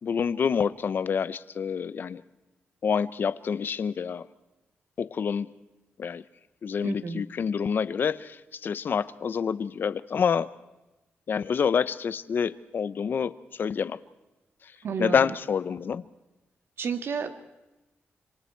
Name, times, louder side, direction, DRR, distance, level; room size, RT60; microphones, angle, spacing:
voice 1, 0.0-2.2 2.8-4.3 5.0-5.5 6.0-6.2 6.6-10.5 11.3-14.0 15.0-16.0, left 6 dB, 50° left, 15 dB, 0.8 m, -27 dB
voice 2, 6.8-7.2 14.8-15.2 16.8-17.3, right 6 dB, 65° right, 8 dB, 1.8 m, -31 dB
26.5 x 26.0 x 4.6 m, 1.0 s
wide cardioid pair, 120°, 4 cm